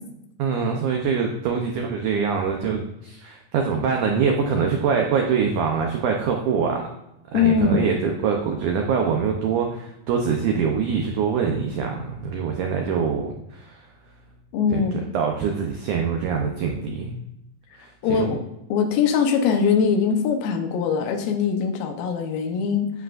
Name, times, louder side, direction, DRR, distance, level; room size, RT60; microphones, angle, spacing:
voice 1, 0.4-6.9 7.3-13.8 14.7-17.1 17.7-18.4, right 6 dB, 80° right, 2 dB, 1.8 m, -24 dB
voice 2, 7.3-7.9 14.5-15.0 18.0-18.4 18.7-22.9, left 6 dB, 70° left, 4 dB, 2.5 m, -22 dB
10.0 x 8.0 x 2.5 m, 0.86 s
omnidirectional pair, 4.6 m